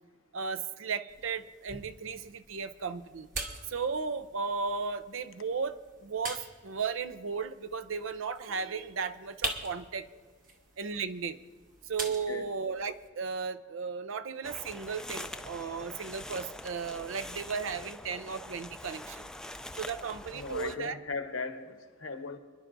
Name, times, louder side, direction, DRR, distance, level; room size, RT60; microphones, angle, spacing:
voice 1, 0.3-3.3 3.7-10.1 10.8-11.4 11.8-19.3 19.8-21.0, right 5 dB, 70° right, 0.6 m, -35 dB
sound 1, 1.1-13.1, right 2 dB, 45° right, 1.3 m, -44 dB
sound 2, 14.4-20.8, left 1 dB, 5° left, 0.4 m, -44 dB
voice 2, 20.3-22.4, left 4 dB, 70° left, 1.0 m, -38 dB
26.0 x 11.0 x 2.6 m
head